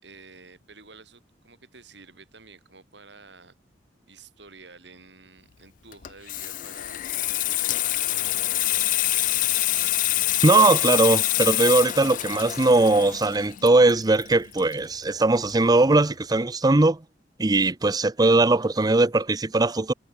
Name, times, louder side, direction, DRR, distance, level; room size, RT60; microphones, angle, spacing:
voice 1, 0.0-3.6 4.1-9.6, right 3 dB, 75° right, 5.9 m, -50 dB
Water tap faucet / Sink (filling or washing), 5.9-15.2 15.5-15.8, left 15 dB, 45° left, 0.4 m, -26 dB
voice 2, 10.4-17.0 17.4-19.9, right 2 dB, 20° right, 0.6 m, -20 dB
head